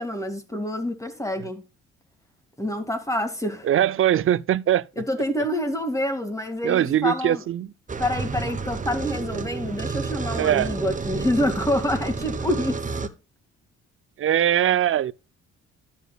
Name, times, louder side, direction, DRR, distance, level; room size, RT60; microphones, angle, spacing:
voice 1, 0.0-1.6 2.6-3.7 5.0-7.4 8.0-12.8, left 1 dB, 10° left, 2.2 m, -27 dB
voice 2, 3.6-4.9 6.6-7.7 10.4-10.7 14.2-15.1, right 11 dB, 45° right, 0.5 m, -21 dB
sound 1, 7.9-13.1, right 4 dB, 25° right, 1.0 m, -30 dB
12.0 x 7.1 x 2.3 m
cardioid pair, 90°, 30 cm